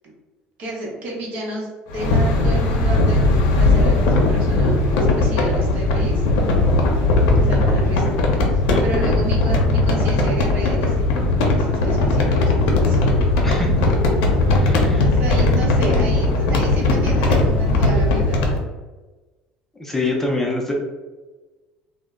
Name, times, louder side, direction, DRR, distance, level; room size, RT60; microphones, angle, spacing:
voice 1, 0.6-6.2 7.4-8.2 8.5-13.1 14.9-18.5, right 1 dB, 55° right, -2 dB, 0.8 m, -31 dB
sound 1, 1.9-18.6, left 2 dB, 85° left, 0.6 m, -18 dB
voice 2, 13.4-13.7 14.5-15.1 19.8-20.7, left 2 dB, 10° left, -1 dB, 0.5 m, -25 dB
2.1 x 2.0 x 3.5 m, 1.2 s
cardioid pair, 120°, 3 cm